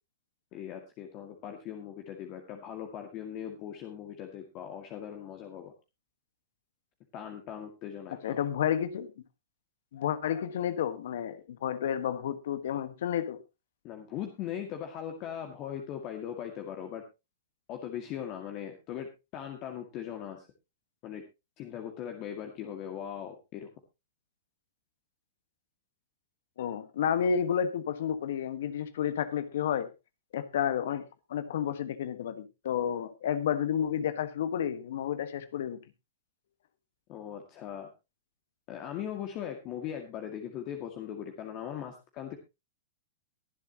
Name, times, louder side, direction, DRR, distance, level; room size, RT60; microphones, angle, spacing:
voice 1, 0.5-5.7 7.1-8.4 13.8-17.0 17.7-20.5 21.0-21.2 21.6-23.7 37.1-37.9 38.7-42.4, left 9 dB, 40° left, 2.0 m, -39 dB
voice 2, 8.2-9.1 9.9-13.4 26.6-29.9 30.3-31.0 31.3-35.8, left 8 dB, 70° left, 1.4 m, -31 dB
22.5 x 7.6 x 2.9 m
hypercardioid pair, 130°, 0 cm